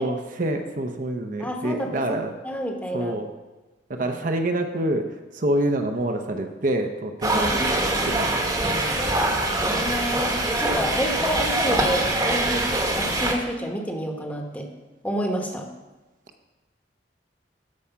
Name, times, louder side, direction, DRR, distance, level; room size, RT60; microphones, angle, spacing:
voice 1, 0.0-2.3 2.9-3.3 3.9-7.5 8.0-8.7, right 1 dB, 45° right, 5 dB, 0.7 m, -27 dB
voice 2, 1.4-2.2 2.4-3.2 4.0-4.1 7.3-7.9 9.6-12.7 12.9-14.7 15.0-15.7, equal, 10° left, 2 dB, 1.1 m, -29 dB
sound 1, 7.2-13.3, right 1 dB, 20° right, 1.1 m, -23 dB
13.0 x 4.8 x 5.8 m, 1.1 s
head